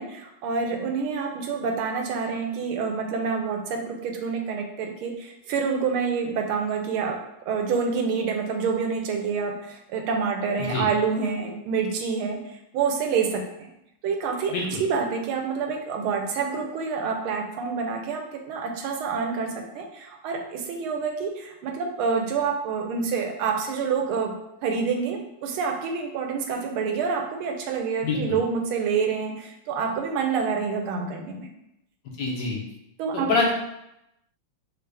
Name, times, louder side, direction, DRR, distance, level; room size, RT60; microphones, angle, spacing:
voice 1, 0.0-7.2 7.5-13.7 14.0-14.5 14.8-24.3 24.6-31.5 33.0-33.3, right 5 dB, 85° right, 3 dB, 1.5 m, -27 dB
voice 2, 14.5-14.8 28.0-28.2 32.2-32.6 33.1-33.5, left 3 dB, 60° left, -2 dB, 1.4 m, -25 dB
6.5 x 2.4 x 3.3 m, 0.84 s
omnidirectional pair, 2.3 m